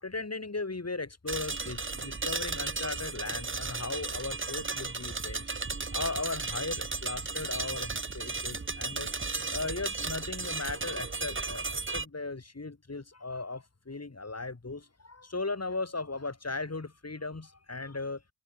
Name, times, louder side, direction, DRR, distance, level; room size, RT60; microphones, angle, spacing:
voice 1, 0.0-5.5 5.9-9.1 9.5-18.2, left 3 dB, 35° left, 2.2 m, -37 dB
sound 1, 1.3-12.1, right 4 dB, 25° right, 0.9 m, -35 dB
wide cardioid pair, 55°, 46 cm